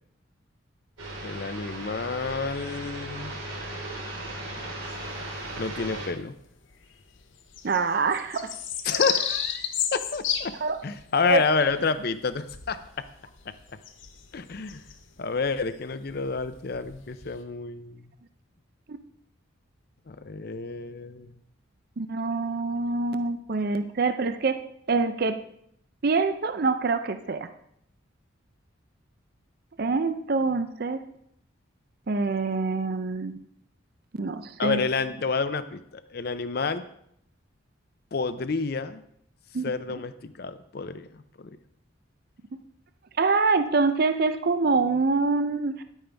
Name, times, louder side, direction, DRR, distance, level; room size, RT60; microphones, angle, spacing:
sound 1, 1.0-6.1, right 1 dB, 75° right, 3.5 m, -36 dB
voice 1, 1.2-3.3 5.6-6.3 8.8-10.6 10.8-13.1 13.5-13.6 14.3-14.8 15.2-18.1 20.1-21.3 34.6-36.8 38.1-39.0 39.6-41.1 41.4-41.6, left 4 dB, 50° left, 12 dB, 0.5 m, -29 dB
sound 2, 4.8-5.9 6.4-6.5 6.7-17.4, left 8 dB, 75° left, 0.9 m, -33 dB
voice 2, 7.6-8.5 10.6-10.8 11.2-11.4 18.9-19.0 22.0-24.6 24.9-25.4 26.0-27.5 29.8-31.0 32.1-33.4 34.2-34.8 39.5-39.7 43.2-45.8, right 4 dB, 50° right, 10 dB, 0.5 m, -25 dB
10.5 x 9.0 x 3.4 m, 0.71 s
head